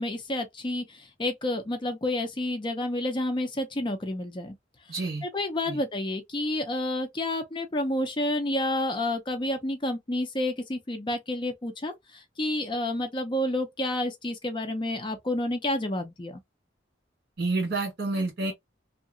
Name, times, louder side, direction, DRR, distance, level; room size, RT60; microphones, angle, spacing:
voice 1, 0.0-4.5 5.2-16.4, left 1 dB, 25° left, 0.5 m, -30 dB
voice 2, 4.9-5.2 5.7-5.8 17.4-18.5, right 3 dB, 55° right, 1.7 m, -29 dB
2.8 x 2.5 x 2.6 m
head